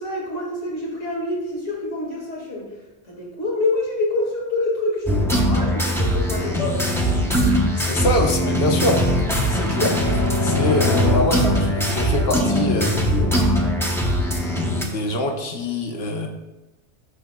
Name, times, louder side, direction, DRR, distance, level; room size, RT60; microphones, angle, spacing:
voice 1, 0.0-2.7 3.0-7.0 7.4-7.7, left 2 dB, 85° left, -4 dB, 2.3 m, -27 dB
Strange Theme, 5.1-14.8, equal, 5° left, 0.7 m, -20 dB
voice 2, 7.8-9.0 9.5-10.0 10.4-13.2 14.8-16.3, left 2 dB, 55° left, 3 dB, 1.1 m, -24 dB
9.7 x 6.0 x 2.2 m, 1.0 s
omnidirectional pair, 1.2 m